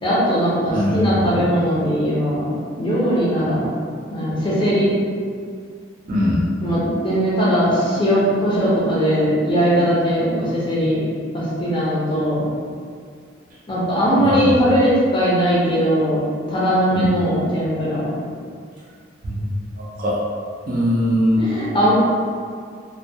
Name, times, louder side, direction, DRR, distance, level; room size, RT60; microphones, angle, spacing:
voice 1, 0.0-3.7 4.1-4.9 6.6-11.0 11.3-12.5 13.7-16.2 16.5-18.1 21.4-21.9, equal, 25° left, -8 dB, 0.5 m, -19 dB
voice 2, 0.7-1.0 1.3-1.5 6.1-6.4 14.2-14.5 16.9-17.1 19.2-19.5 19.8-20.2 20.7-21.5, equal, 45° right, -5 dB, 0.4 m, -21 dB
2.2 x 2.1 x 2.6 m, 2.1 s
head